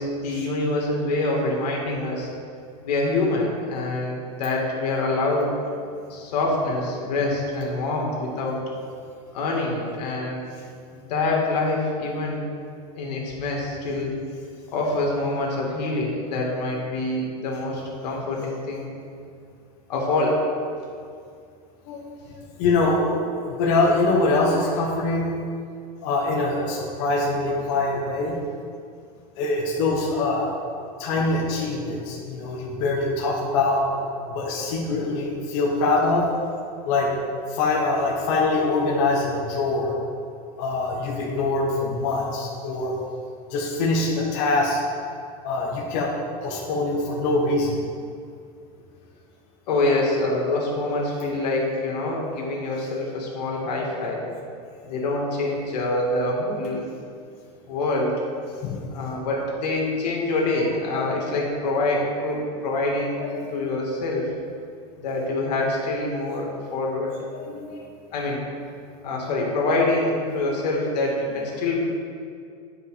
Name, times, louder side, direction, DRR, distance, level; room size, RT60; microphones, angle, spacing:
voice 1, 0.0-2.3 2.8-5.5 6.1-8.6 9.3-10.4 10.9-12.4 13.0-14.1 14.7-18.9 19.9-20.4 49.7-54.2 54.8-56.8 57.7-58.1 58.9-63.2 63.5-64.3 65.0-67.1 68.1-68.4 69.0-71.8, left 2 dB, 85° left, -2 dB, 2.1 m, -25 dB
voice 2, 21.9-25.4 26.0-28.4 29.4-30.5 31.0-33.8 34.3-36.2 36.8-37.1 37.5-39.9 40.6-43.0 43.5-44.8 45.4-46.1 46.4-47.8 58.6-58.8 60.6-61.2 63.2-63.7 67.3-67.8 71.5-71.7, left 2 dB, 50° left, -3 dB, 1.1 m, -24 dB
9.6 x 5.0 x 4.9 m, 2.4 s
supercardioid pair, 175°, 20 cm